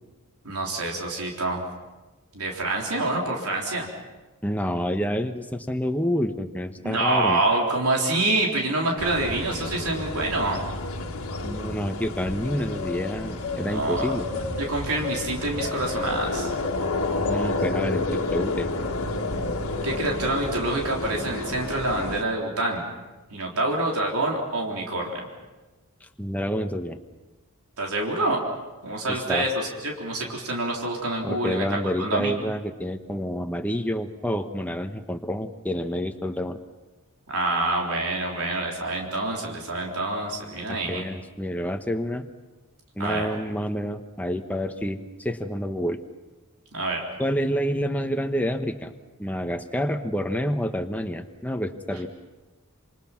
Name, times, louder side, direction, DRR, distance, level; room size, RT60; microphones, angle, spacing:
voice 1, 0.4-1.6 2.3-3.9 6.8-10.6 13.7-14.2 14.6-16.5 19.8-22.9 23.3-25.3 27.8-28.4 28.8-31.6 32.0-32.3 37.3-41.0 43.0-43.3 46.7-47.0, right 2 dB, 85° right, 0 dB, 3.9 m, -26 dB
voice 2, 4.4-7.4 11.4-14.3 17.3-18.7 26.0-27.0 29.1-29.5 31.2-36.6 40.7-42.3 42.9-46.0 47.2-48.9 49.2-52.1, equal, 5° left, 6 dB, 1.2 m, -28 dB
sound 1, 9.0-22.2, left 2 dB, 75° left, 1.8 m, -30 dB
27.0 x 26.0 x 6.0 m, 1.2 s
head